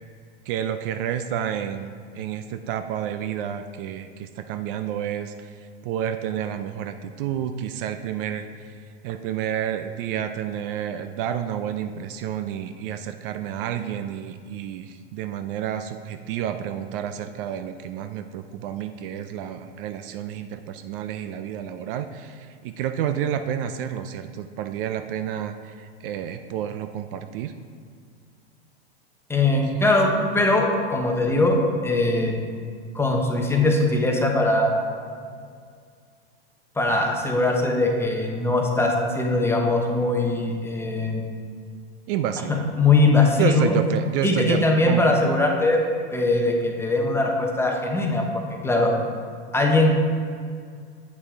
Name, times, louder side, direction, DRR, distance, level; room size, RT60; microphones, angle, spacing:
voice 1, 0.5-5.5 5.8-8.7 9.0-27.5 42.1-42.7 43.4-45.2, right 9 dB, 55° right, 9 dB, 0.5 m, -30 dB
voice 2, 29.3-30.1 30.3-32.3 32.9-34.8 36.8-41.2 42.5-43.7 44.2-45.8 46.1-48.2 48.6-48.9 49.5-50.0, left 2 dB, 10° left, 0 dB, 0.8 m, -21 dB
8.3 x 5.4 x 3.7 m, 2.1 s
hypercardioid pair, 120°, 32 cm